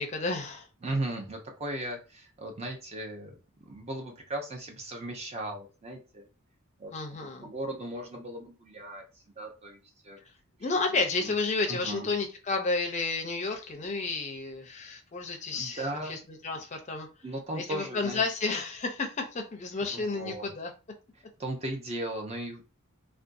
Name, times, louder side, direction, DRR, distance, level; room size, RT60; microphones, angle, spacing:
voice 1, 0.0-0.7 6.9-7.5 10.6-15.8 16.1-16.2 16.4-17.1 17.5-20.7, left 3 dB, 30° left, 4 dB, 0.5 m, -31 dB
voice 2, 0.8-6.3 6.8-10.2 10.9-11.3 11.7-12.1 15.3-16.3 17.2-18.2 19.8-20.5 21.4-22.6, right 1 dB, 30° right, 2 dB, 0.6 m, -37 dB
2.5 x 2.2 x 2.5 m, 0.32 s
head